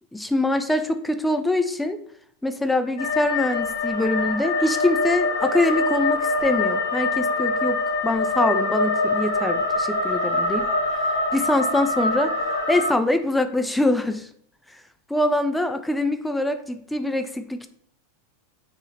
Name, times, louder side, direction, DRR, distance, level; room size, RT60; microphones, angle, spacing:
voice 1, 0.1-2.0 2.4-10.7 11.0-12.3 12.7-14.3 14.7-14.8 15.1-17.7, left 1 dB, 5° left, 8 dB, 0.3 m, -24 dB
sound 1, 3.0-12.9, left 2 dB, 70° left, 1.1 m, -24 dB
3.9 x 3.7 x 3.2 m, 0.66 s
figure-of-eight pair, 90°, 0 cm